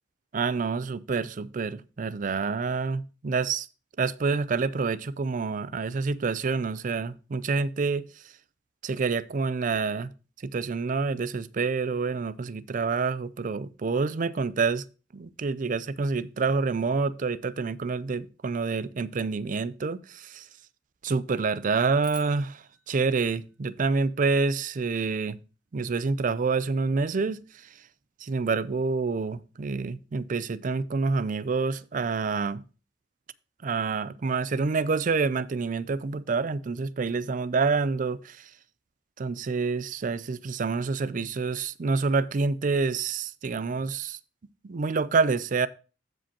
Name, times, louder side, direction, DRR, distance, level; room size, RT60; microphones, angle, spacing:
voice 1, 0.3-3.7 4.0-8.0 8.8-10.1 10.4-14.8 15.1-20.4 21.0-25.4 25.7-27.4 28.2-32.6 33.6-38.2 39.2-44.2 44.6-45.7, right 4 dB, 45° right, 0.4 m, -27 dB
sound 1, 22.0-24.4, equal, 5° right, 1.3 m, -51 dB
15.0 x 5.1 x 2.9 m
head